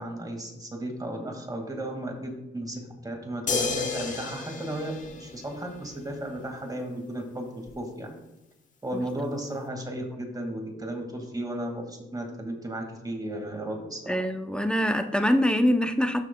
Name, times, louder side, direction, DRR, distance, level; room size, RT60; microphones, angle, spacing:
voice 1, 0.0-8.1 8.8-14.2, right 1 dB, 20° right, 3 dB, 2.0 m, -35 dB
sound 1, 3.5-5.9 7.7-7.8, left 4 dB, 40° left, 1.2 m, -31 dB
voice 2, 14.1-16.3, equal, 5° left, 7 dB, 0.6 m, -24 dB
12.0 x 6.4 x 2.3 m, 0.94 s
cardioid pair, 90°, 20 cm